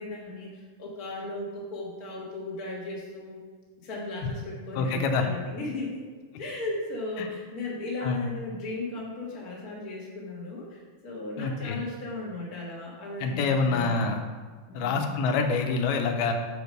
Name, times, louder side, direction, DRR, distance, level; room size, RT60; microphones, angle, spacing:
voice 1, 0.0-3.4 3.8-6.0 6.4-14.1 14.7-15.0, left 2 dB, 45° left, -4 dB, 1.2 m, -36 dB
voice 2, 4.8-5.3 7.2-7.3 8.0-8.2 11.4-11.8 13.2-14.2 14.7-16.3, left 4 dB, 80° left, 5 dB, 2.6 m, -26 dB
6.9 x 5.0 x 6.5 m, 1.4 s
omnidirectional pair, 4.6 m